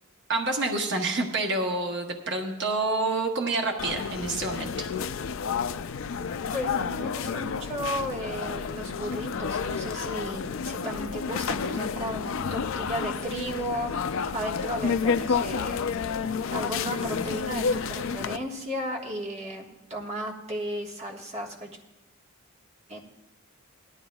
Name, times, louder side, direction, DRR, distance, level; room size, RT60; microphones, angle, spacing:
voice 1, 0.3-4.7, right 2 dB, 55° right, 2 dB, 1.0 m, -28 dB
sound 1, 3.8-18.4, left 5 dB, 65° left, 0.4 m, -30 dB
voice 2, 6.5-15.9 16.5-21.7 22.9-23.0, equal, 30° right, -1 dB, 1.5 m, -34 dB
18.0 x 12.5 x 2.3 m, 0.98 s
head